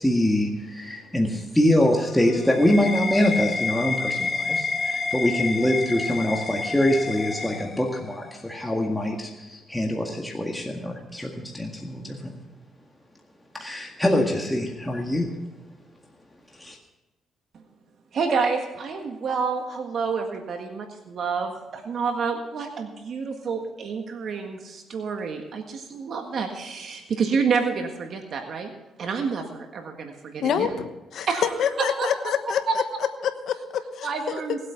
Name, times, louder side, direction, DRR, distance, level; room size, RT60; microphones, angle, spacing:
voice 1, 0.0-12.3 13.5-15.3 16.6-16.8, left 1 dB, 5° left, 1.9 m, -24 dB
sound 1, 1.8-8.3, left 4 dB, 35° left, 1.2 m, -29 dB
voice 2, 18.1-28.7 29.0-30.7 31.3-31.4 31.8-32.3 32.7-32.8 34.0-34.6, right 5 dB, 60° right, 1.6 m, -28 dB
voice 3, 30.4-31.3 31.6-32.8 33.2-34.4, left 8 dB, 70° left, 1.2 m, -27 dB
19.0 x 8.4 x 5.8 m
cardioid pair, 90°, 0 cm